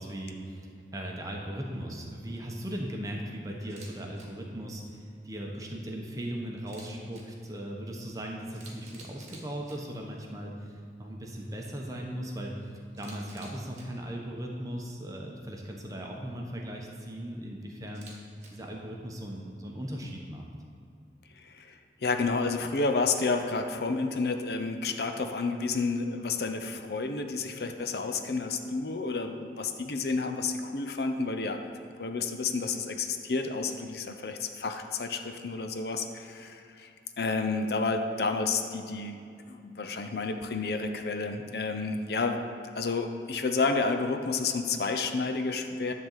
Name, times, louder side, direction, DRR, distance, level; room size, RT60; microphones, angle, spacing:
voice 1, 0.0-18.1 18.5-20.5, right 1 dB, 20° right, 0 dB, 1.0 m, -38 dB
Camera, 3.6-4.2 6.6-7.2 8.1-8.2 8.5-9.7 12.9-13.8 17.9-18.5, right 3 dB, 40° right, 1.4 m, -50 dB
voice 2, 21.4-31.6 32.0-36.9 37.2-42.4 42.8-45.9, left 4 dB, 65° left, 6 dB, 0.6 m, -30 dB
11.0 x 3.9 x 7.3 m, 2.4 s
head